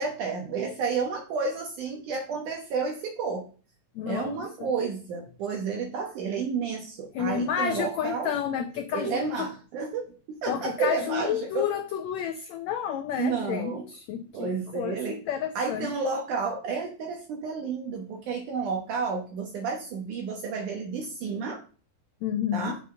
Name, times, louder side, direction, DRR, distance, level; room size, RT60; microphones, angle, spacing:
voice 1, 0.0-3.5 4.1-8.3 8.9-11.7 13.2-13.9 14.3-15.2 15.6-21.6 22.5-22.8, right 5 dB, 70° right, 1 dB, 2.5 m, -31 dB
voice 2, 3.9-4.7 7.1-9.5 10.5-15.9 22.2-22.8, left 8 dB, 85° left, 7 dB, 1.5 m, -31 dB
6.9 x 5.8 x 6.3 m, 0.39 s
omnidirectional pair, 4.0 m